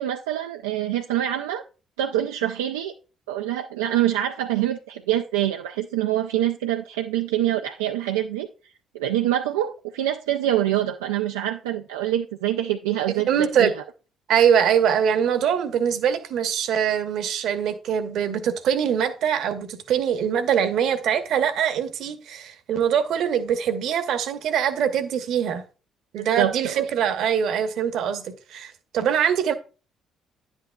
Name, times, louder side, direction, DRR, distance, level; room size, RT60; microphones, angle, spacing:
voice 1, 0.0-1.6 2.0-2.9 3.3-8.5 8.9-13.7 26.2-26.8, right 12 dB, 85° right, 0.3 m, -25 dB
voice 2, 13.3-13.7 14.3-25.6 26.1-28.2 28.5-29.5, right 8 dB, 65° right, 0.9 m, -23 dB
9.9 x 8.2 x 2.2 m
hypercardioid pair, 50°, 0 cm